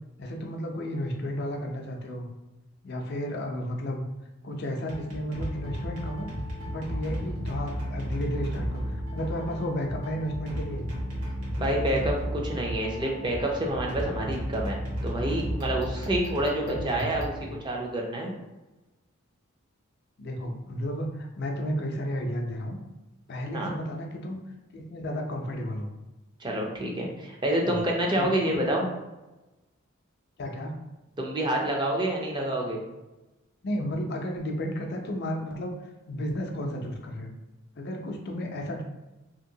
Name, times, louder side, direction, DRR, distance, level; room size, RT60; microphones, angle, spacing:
voice 1, 0.2-2.3 2.8-4.0 4.4-6.3 6.7-10.8 16.5-17.2 20.2-22.8 23.3-24.4 24.7-25.9 27.6-27.8 28.2-28.7 30.4-30.7 33.6-35.7 36.1-37.3 37.8-38.8, equal, 50° left, 2 dB, 0.5 m, -33 dB
sound 1, 4.9-18.0, equal, 90° right, 1.1 m, -34 dB
voice 2, 11.6-17.3 17.6-18.3 23.5-23.7 26.4-28.9 31.2-32.8, right 1 dB, 20° right, -1 dB, 0.5 m, -28 dB
2.8 x 2.8 x 2.7 m, 1.1 s
head